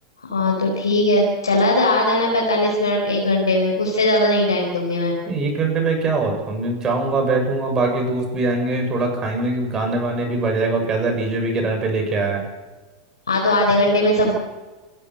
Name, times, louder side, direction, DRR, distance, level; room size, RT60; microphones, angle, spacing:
voice 1, 0.2-5.2 13.3-14.3, left 1 dB, 85° left, -2 dB, 4.5 m, -19 dB
voice 2, 5.3-12.4, right 3 dB, 25° right, 3 dB, 7.0 m, -22 dB
27.5 x 12.0 x 7.9 m, 1.2 s
hypercardioid pair, 95°, 2 cm